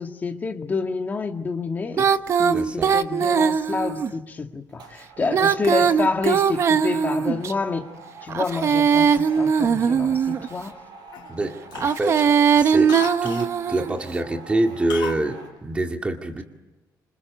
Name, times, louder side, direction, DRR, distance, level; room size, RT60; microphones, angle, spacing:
voice 1, 0.0-2.1 2.4-7.9 8.2-10.8, left 4 dB, 25° left, 1.9 m, -28 dB
Female singing, 1.9-4.1 5.2-7.5 8.3-10.5 11.7-14.0, right 7 dB, 40° right, 0.9 m, -20 dB
voice 2, 2.5-3.0 11.3-16.4, right 2 dB, 15° right, 2.0 m, -26 dB
sound 1, 3.9-4.2 4.7-15.5, right 4 dB, 75° right, 6.3 m, -46 dB
Cough, 9.5-10.8 11.1-11.4 11.7-13.5 14.9-15.3 15.5-15.6, left 10 dB, 75° left, 1.4 m, -37 dB
27.5 x 26.5 x 8.1 m
cardioid pair, 180°, 7 cm